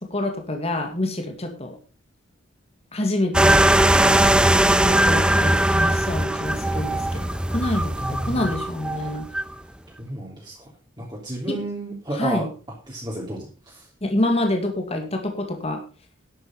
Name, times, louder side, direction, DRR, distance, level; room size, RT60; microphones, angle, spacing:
voice 1, 0.0-1.8 2.9-3.7 4.8-9.3 11.5-11.6 12.1-12.5 14.0-15.8, left 1 dB, 30° left, 4 dB, 2.1 m, -27 dB
sound 1, 3.3-9.5, right 1 dB, 5° right, 0.5 m, -20 dB
voice 2, 8.0-8.5 10.0-10.7 11.0-12.4 12.9-13.9, right 1 dB, 20° right, -4 dB, 3.3 m, -32 dB
11.5 x 8.2 x 5.6 m, 0.35 s
head